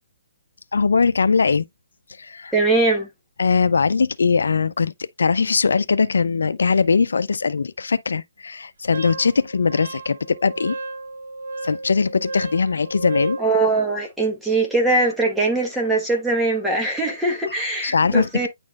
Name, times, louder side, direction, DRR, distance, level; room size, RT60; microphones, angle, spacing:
voice 1, 0.7-1.6 2.2-2.5 3.4-10.8 11.6-13.4 17.8-18.5, left 5 dB, 85° left, 0.5 m, -20 dB
voice 2, 2.5-3.1 13.4-18.5, right 2 dB, 5° right, 1.3 m, -21 dB
Wind instrument woodwind instrument, 8.9-13.5, right 3 dB, 80° right, 1.0 m, -33 dB
9.6 x 4.2 x 2.3 m
hypercardioid pair, 170°, 0 cm